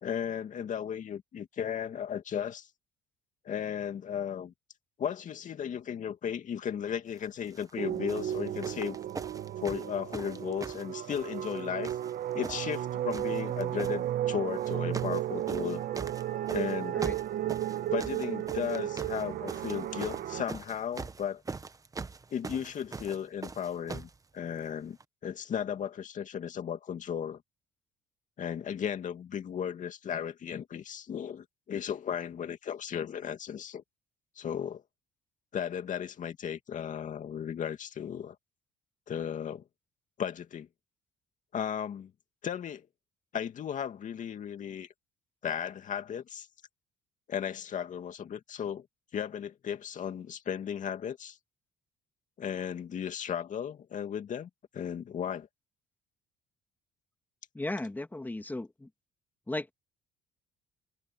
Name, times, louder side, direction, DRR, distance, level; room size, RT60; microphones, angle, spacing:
voice 1, 0.0-2.7 3.4-4.5 5.0-9.0 9.6-12.0 12.3-15.8 16.5-17.0 17.9-21.4 22.3-25.0 25.2-27.4 28.4-33.8 34.4-34.8 35.5-38.4 39.1-39.6 40.2-40.7 41.5-42.1 42.4-42.9 43.3-44.9 45.4-46.5 47.3-48.9 49.1-51.4 52.4-55.5, left 8 dB, 50° left, 2.4 m, -35 dB
sound 1, 7.4-7.7 8.1-11.6 11.8-12.8 13.1-14.0 14.6-15.2 15.5-24.2 25.0-25.1, right 4 dB, 20° right, 1.0 m, -42 dB
sound 2, 7.8-20.4, right 12 dB, 60° right, 1.4 m, -34 dB
voice 2, 57.5-58.9 59.5-59.7, left 2 dB, 10° left, 2.0 m, -36 dB
cardioid pair, 110°, 17 cm